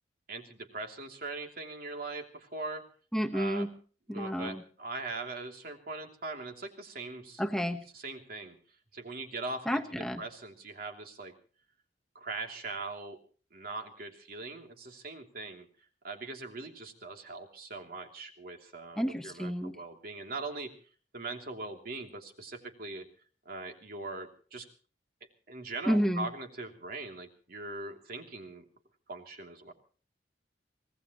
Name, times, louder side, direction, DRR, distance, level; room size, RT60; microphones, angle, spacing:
voice 1, 0.3-2.8 3.3-3.7 4.1-7.4 7.9-8.6 8.9-11.3 12.1-13.2 13.5-15.7 16.0-20.7 21.1-23.1 23.4-24.7 25.5-28.6 29.1-29.7, right 3 dB, 55° right, 3 dB, 3.0 m, -41 dB
voice 2, 3.1-3.7 4.1-4.6 7.4-7.8 9.7-10.2 19.0-19.7 25.9-26.3, equal, 5° left, 4 dB, 1.2 m, -30 dB
25.0 x 18.5 x 3.1 m, 0.42 s
head